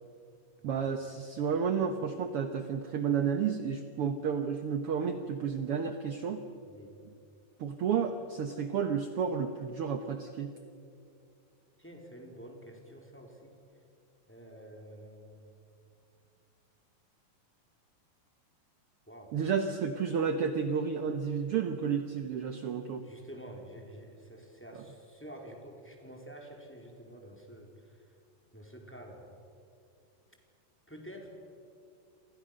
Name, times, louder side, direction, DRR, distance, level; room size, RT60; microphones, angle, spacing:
voice 1, 0.6-6.4 7.6-10.5 19.3-23.0, right 6 dB, 65° right, 7 dB, 1.4 m, -31 dB
voice 2, 6.6-7.0 11.8-13.5 14.3-15.5 19.1-19.3 23.0-28.1 28.5-29.3 30.9-31.3, right 1 dB, 5° left, 1 dB, 3.7 m, -49 dB
29.5 x 26.0 x 6.5 m, 2.5 s
omnidirectional pair, 4.1 m